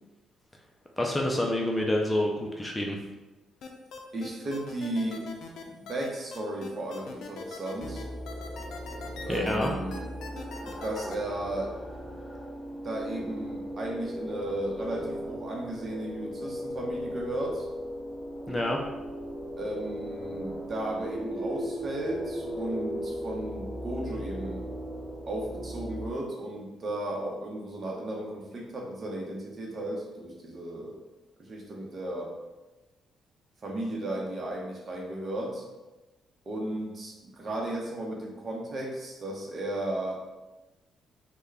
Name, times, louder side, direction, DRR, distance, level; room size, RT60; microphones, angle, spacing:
voice 1, 1.0-3.0 9.3-9.7 18.5-18.8, left 1 dB, 15° left, 0 dB, 0.4 m, -27 dB
sound 1, 3.6-11.1, left 5 dB, 75° left, 0.4 m, -42 dB
voice 2, 4.1-5.3 5.6-8.0 9.3-10.1 10.6-11.7 12.8-17.7 19.6-24.7 25.3-30.9 31.4-32.3 33.6-35.6 36.5-40.2, right 1 dB, 40° right, -1 dB, 0.8 m, -35 dB
sound 2, 7.8-26.1, equal, 5° right, 1.5 m, -37 dB
3.4 x 2.2 x 3.3 m, 1.1 s
cardioid pair, 90°, 0 cm